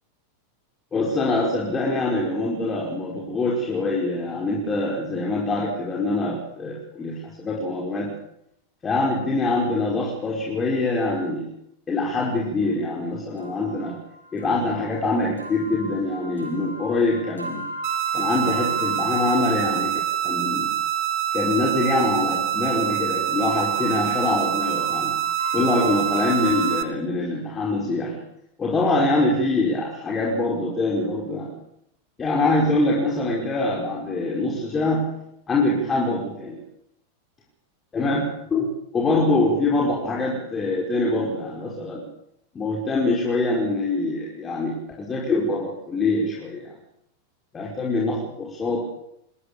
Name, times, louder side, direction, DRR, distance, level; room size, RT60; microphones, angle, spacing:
voice 1, 0.9-8.1 8.8-11.5 11.9-14.0 14.3-17.6 18.1-20.7 21.3-25.2 25.5-28.2 28.6-31.5 32.2-35.1 35.5-36.6 37.9-42.1 42.5-46.7 47.5-48.9, left 2 dB, 20° left, -3 dB, 5.2 m, -24 dB
sound 1, 13.4-19.8 21.4-26.8, equal, 85° right, 7.1 m, -37 dB
sound 2, 17.8-26.8, right 10 dB, 40° right, 1.9 m, -25 dB
27.5 x 15.5 x 6.9 m, 0.78 s
figure-of-eight pair, 90°, 0 cm